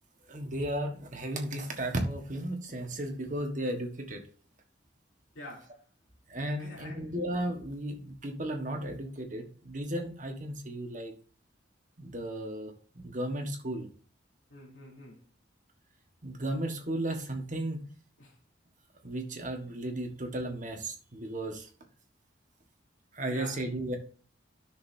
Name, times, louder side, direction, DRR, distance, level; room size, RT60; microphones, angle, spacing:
voice 1, 0.3-4.2 6.3-11.1 12.0-13.9 16.2-17.8 19.0-21.7 23.1-24.0, right 1 dB, 40° right, 1.5 m, -34 dB
voice 2, 5.3-5.8 6.6-7.0 14.5-15.2 18.2-18.3 23.3-23.6, left 1 dB, 80° left, 3.2 m, -46 dB
12.5 x 6.4 x 2.8 m
head